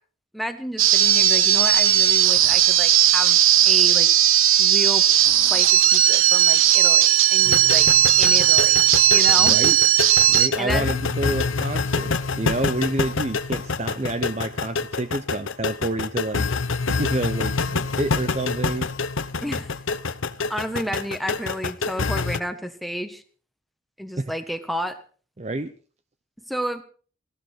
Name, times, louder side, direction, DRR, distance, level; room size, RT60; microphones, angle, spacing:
voice 1, 0.3-4.1 4.6-5.1 5.5-7.9 8.2-8.8 9.1-9.6 10.6-10.9 19.4-19.7 20.5-23.2 24.0-25.0 26.5-26.8, equal, ahead, 7 dB, 1.4 m, -31 dB
sound 1, 0.8-10.5, right 11 dB, 85° right, 1.0 m, -17 dB
sound 2, 7.4-22.4, left 4 dB, 75° left, 0.9 m, -27 dB
voice 2, 9.4-9.8 10.3-16.5 16.8-18.9 24.2-24.3 25.4-25.7, right 2 dB, 30° right, 11 dB, 0.7 m, -28 dB
18.0 x 16.0 x 4.5 m, 0.41 s
head